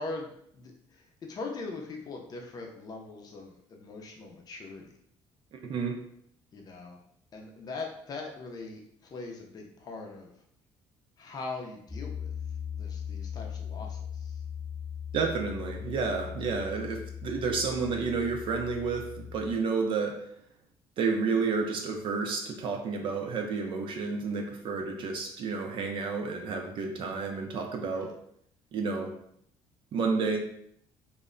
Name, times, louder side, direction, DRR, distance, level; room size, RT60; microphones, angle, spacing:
voice 1, 0.0-5.0 6.5-7.0 7.3-10.3 11.2-12.3 12.7-14.4 27.9-28.1, left 3 dB, 40° left, 1 dB, 0.5 m, -41 dB
voice 2, 5.5-6.0 15.1-20.2 21.0-28.1 28.7-29.1 29.9-30.4, right 4 dB, 55° right, 3 dB, 0.5 m, -30 dB
Piano, 11.9-19.6, left 8 dB, ahead, 0.9 m, -39 dB
2.1 x 2.1 x 3.7 m, 0.68 s
cardioid pair, 110°, 10 cm